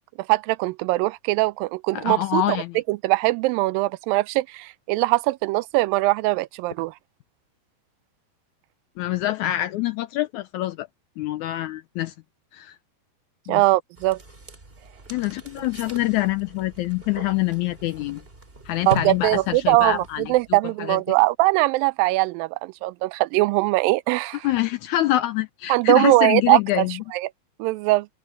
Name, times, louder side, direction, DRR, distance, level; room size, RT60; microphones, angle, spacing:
voice 1, 0.3-2.6 2.9-6.9 13.5-14.2 18.9-24.5 25.7-26.9 27.1-27.3 27.6-28.1, right 20 dB, 85° right, 2.3 m, -21 dB
voice 2, 1.9-2.8 9.0-10.9 11.2-12.1 12.5-12.7 13.5-13.6 15.1-18.2 18.7-20.3 20.8-21.0 24.4-27.0, left 15 dB, 85° left, 1.7 m, -25 dB
sound 1, 14.0-20.6, right 1 dB, 20° right, 2.4 m, -39 dB
open air
omnidirectional pair, 4.0 m